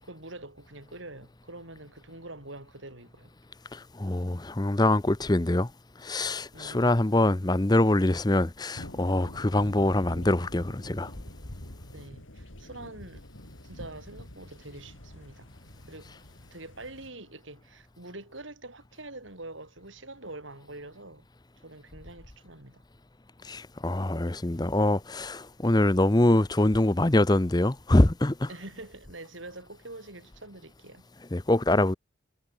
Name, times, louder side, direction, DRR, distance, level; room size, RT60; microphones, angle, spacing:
voice 1, 0.0-3.3 6.5-7.0 9.6-9.8 11.9-13.2 13.6-15.5 15.9-16.1 16.5-21.3 21.6-22.8 28.5-31.1, right 2 dB, 75° right, 5.9 m, -45 dB
voice 2, 3.7-5.7 6.0-11.1 23.4-28.5 31.3-31.9, left 1 dB, 20° left, 0.8 m, -24 dB
sound 1, 8.7-17.1, left 1 dB, 85° left, 3.9 m, -46 dB
head